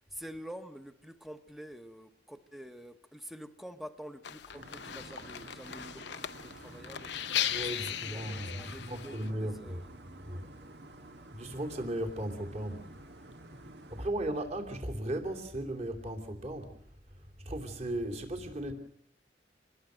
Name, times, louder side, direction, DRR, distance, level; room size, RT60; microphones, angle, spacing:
voice 1, 0.1-7.2 7.6-9.9, equal, ahead, 1.2 m, -47 dB
sound 1, 4.2-9.3, left 10 dB, 75° left, 0.8 m, -37 dB
sound 2, 4.5-14.1, right 1 dB, 70° right, 1.9 m, -51 dB
voice 2, 7.5-9.8 10.2-10.4 11.3-12.8 13.9-16.8 17.4-18.7, right 1 dB, 40° right, 3.0 m, -36 dB
26.0 x 20.5 x 6.4 m
head